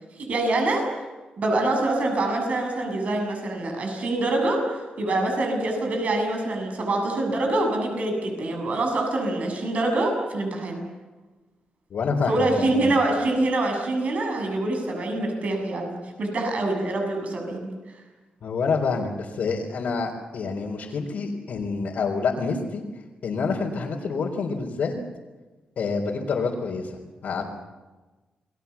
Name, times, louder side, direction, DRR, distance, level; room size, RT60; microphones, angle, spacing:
voice 1, 0.2-0.9 1.4-10.8 12.3-17.7, right 2 dB, 55° right, 3 dB, 7.4 m, -25 dB
voice 2, 11.9-13.0 18.4-22.8 23.2-24.9 25.8-27.4, left 4 dB, 70° left, -3 dB, 4.0 m, -27 dB
29.0 x 21.5 x 7.2 m, 1.2 s
cardioid pair, 105°, 3 cm